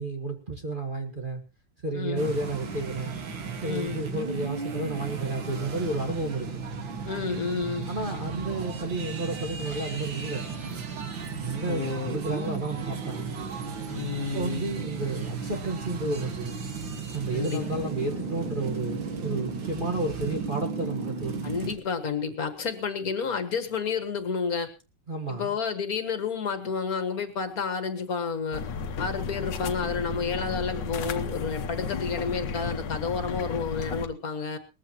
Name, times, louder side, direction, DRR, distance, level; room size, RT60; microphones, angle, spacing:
voice 1, 0.0-1.4 1.8-3.2 3.6-6.7 7.9-10.7 11.4-13.4 14.3-16.6 17.1-21.5 25.1-25.5, right 2 dB, 25° right, 3 dB, 1.7 m, -32 dB
sound 1, 2.2-21.7, right 5 dB, 80° right, 2.5 m, -35 dB
voice 2, 3.6-4.0 7.0-7.9 11.6-12.2 13.9-14.7 17.3-17.7 21.4-24.7 25.3-28.7 29.0-34.6, left 5 dB, 50° left, 9 dB, 2.1 m, -30 dB
sound 2, 28.5-34.1, left 5 dB, 70° left, 1.7 m, -33 dB
20.0 x 14.5 x 3.0 m, 0.31 s
omnidirectional pair, 2.0 m